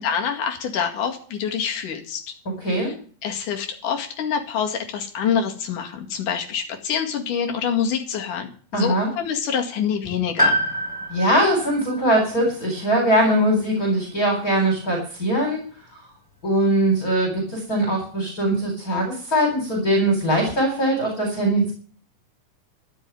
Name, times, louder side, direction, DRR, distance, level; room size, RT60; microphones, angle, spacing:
voice 1, 0.0-2.2 2.8-2.9 3.2-10.6, left 7 dB, 75° left, 2 dB, 3.7 m, -26 dB
voice 2, 2.6-2.9 8.7-9.1 11.1-15.6 16.4-21.7, right 1 dB, 25° left, 1 dB, 4.4 m, -21 dB
Piano, 10.4-14.5 15.8-15.9, equal, 5° right, 6.2 m, -27 dB
13.5 x 7.3 x 9.3 m, 0.44 s
omnidirectional pair, 3.7 m